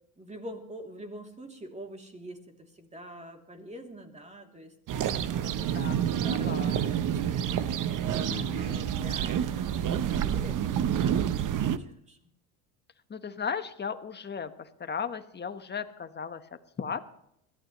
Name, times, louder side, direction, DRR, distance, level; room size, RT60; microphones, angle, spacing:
voice 1, 0.2-5.8 6.2-12.2, equal, 15° right, 3 dB, 3.0 m, -46 dB
sound 1, 4.9-11.8, right 9 dB, 45° right, 0.9 m, -28 dB
voice 2, 5.7-6.9 8.3-8.8 13.1-17.1, left 6 dB, 25° left, 8 dB, 1.3 m, -36 dB
21.5 x 14.5 x 3.2 m, 0.75 s
supercardioid pair, 90°, 43 cm